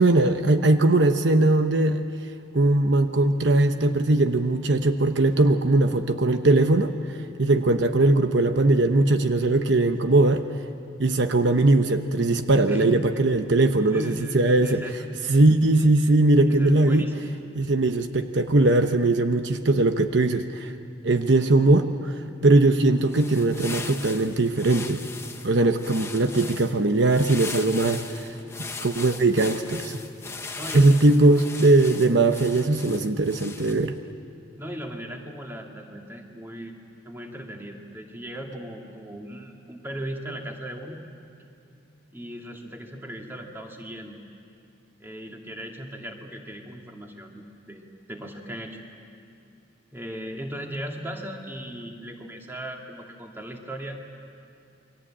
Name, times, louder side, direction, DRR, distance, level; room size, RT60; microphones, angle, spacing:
voice 1, 0.0-2.0 2.5-6.9 7.4-10.4 11.0-14.8 15.3-17.1 17.5-20.7 21.0-22.1 22.4-25.0 25.4-28.3 28.8-30.0 30.7-33.9, right 2 dB, 65° right, 7 dB, 0.9 m, -20 dB
voice 2, 12.7-13.0 13.5-15.1 16.5-17.3 30.5-31.5 32.3-32.4 34.6-36.8 37.0-41.0 42.1-44.2 45.0-47.8 48.1-48.8 49.9-54.0, equal, 10° right, 1 dB, 2.4 m, -37 dB
sound 1, 22.9-34.0, left 4 dB, 15° left, 1.1 m, -39 dB
29.0 x 23.0 x 8.8 m, 2.6 s
head